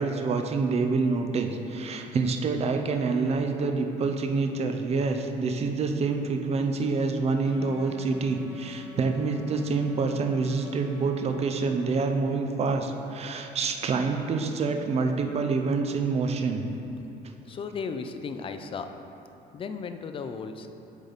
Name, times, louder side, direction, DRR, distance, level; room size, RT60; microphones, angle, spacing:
voice 1, 0.0-16.7, right 4 dB, 40° right, 5 dB, 0.5 m, -27 dB
sound 1, 7.4-11.5, left 6 dB, 65° left, 1.1 m, -47 dB
voice 2, 17.5-18.9 19.5-20.7, left 5 dB, 30° left, 8 dB, 0.4 m, -35 dB
8.1 x 3.4 x 4.0 m, 2.9 s
cardioid pair, 110°, 17 cm